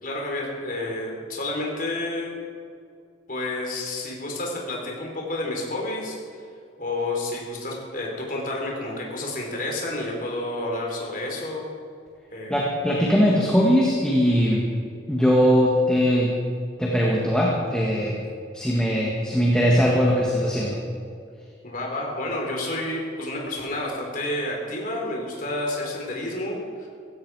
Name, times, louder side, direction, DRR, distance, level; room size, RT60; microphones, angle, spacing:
voice 1, 0.0-2.3 3.3-6.2 6.8-11.7 12.3-12.6 21.6-26.9, left 1 dB, 45° left, -1 dB, 3.7 m, -30 dB
voice 2, 12.5-14.6 15.1-16.4 16.8-18.2 18.5-20.8, equal, 5° left, -4 dB, 1.7 m, -20 dB
16.5 x 15.5 x 4.8 m, 2.3 s
head